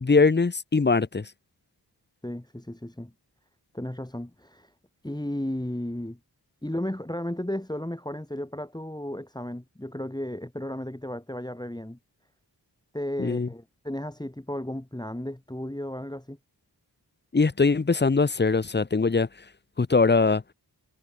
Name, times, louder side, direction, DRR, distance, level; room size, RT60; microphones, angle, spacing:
voice 1, 0.0-1.3 13.2-13.5 17.3-19.3 19.8-20.4, left 4 dB, 25° left, 0.7 m, -21 dB
voice 2, 2.2-3.1 3.7-4.7 5.0-6.2 6.6-12.0 12.9-16.4, left 1 dB, 10° left, 2.2 m, -34 dB
wide cardioid pair, 60°, 41 cm